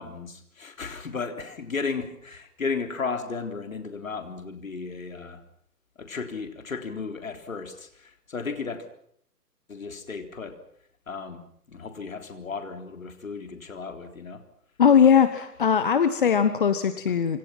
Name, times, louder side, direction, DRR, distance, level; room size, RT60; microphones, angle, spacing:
voice 1, 0.0-5.4 6.0-8.8 9.7-10.6 11.1-11.4 11.7-14.4, left 4 dB, 55° left, 6 dB, 3.8 m, -34 dB
voice 2, 14.8-17.4, left 7 dB, 35° left, 12 dB, 1.2 m, -20 dB
26.5 x 26.0 x 5.9 m, 0.66 s
figure-of-eight pair, 135°, 48 cm